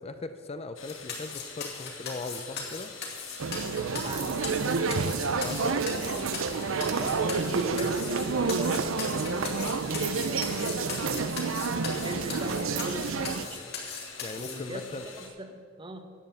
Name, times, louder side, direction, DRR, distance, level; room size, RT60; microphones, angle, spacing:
voice 1, 0.0-2.9 5.3-5.7 14.2-15.1, left 3 dB, 30° left, 9 dB, 0.5 m, -39 dB
sound 1, 0.8-15.3, left 5 dB, 75° left, 1.6 m, -46 dB
sound 2, 0.9-14.5, left 5 dB, 55° left, 2.4 m, -38 dB
sound 3, 3.4-13.5, right 4 dB, 75° right, 0.6 m, -29 dB
voice 2, 3.8-11.4 11.9-13.7 14.4-16.1, right 1 dB, 25° right, 7 dB, 1.0 m, -42 dB
11.0 x 7.6 x 7.9 m, 2.2 s
head